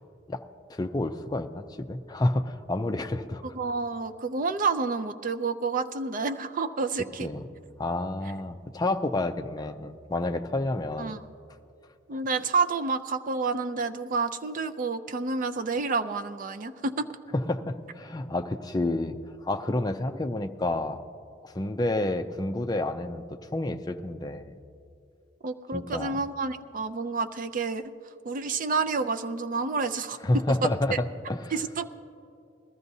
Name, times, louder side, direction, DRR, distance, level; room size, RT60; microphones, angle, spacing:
voice 1, 0.7-3.4 7.2-7.5 7.8-11.2 12.1-12.2 17.5-19.2 19.4-21.0 21.4-24.6 25.7-26.2 30.2-31.5, left 2 dB, 20° left, 6 dB, 0.4 m, -29 dB
voice 2, 3.5-7.3 11.0-11.2 12.1-17.1 25.4-27.9 28.2-31.0 31.5-31.9, right 4 dB, 45° right, 10 dB, 0.5 m, -29 dB
20.5 x 14.0 x 2.7 m, 2.6 s
head